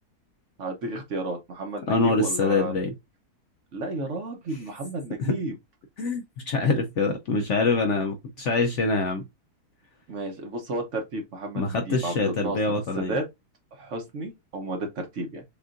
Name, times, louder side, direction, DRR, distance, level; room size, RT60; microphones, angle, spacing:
voice 1, 0.6-2.8 3.7-5.5 10.1-12.6 13.0-13.2 13.7-15.4, right 2 dB, 55° right, 1.1 m, -32 dB
voice 2, 1.9-2.9 5.2-5.4 6.0-9.3 11.5-13.2, left 3 dB, 65° left, 0.8 m, -25 dB
6.9 x 2.5 x 2.5 m
omnidirectional pair, 1.7 m